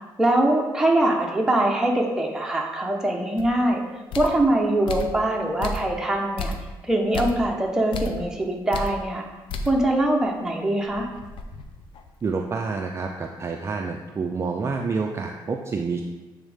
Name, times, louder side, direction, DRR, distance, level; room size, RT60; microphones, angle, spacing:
voice 1, 0.2-3.8 4.1-6.5 6.8-9.2 9.7-11.1, right 1 dB, 5° right, 0 dB, 0.9 m, -22 dB
sound 1, 3.4-3.5 4.1-4.4 4.9-5.2 5.6-6.0 6.4-6.7 7.1-7.4 7.9-8.2 8.7-9.0 9.5-9.8 10.2-10.3 10.8-12.3, left 2 dB, 80° left, 0.5 m, -33 dB
voice 2, 12.2-16.0, right 4 dB, 30° right, 2 dB, 0.4 m, -28 dB
8.0 x 3.5 x 3.5 m, 1.2 s
cardioid pair, 105°, 9 cm